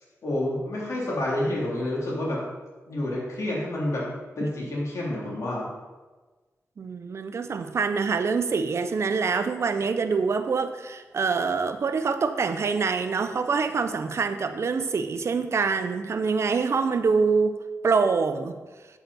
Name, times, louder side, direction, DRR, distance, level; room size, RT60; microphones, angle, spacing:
voice 1, 0.2-2.4 2.9-4.0 4.4-5.7, left 1 dB, 65° left, -4 dB, 3.0 m, -28 dB
voice 2, 6.8-18.6, right 5 dB, 55° right, 9 dB, 0.6 m, -25 dB
8.3 x 8.0 x 4.1 m, 1.3 s
wide cardioid pair, 105°, 5 cm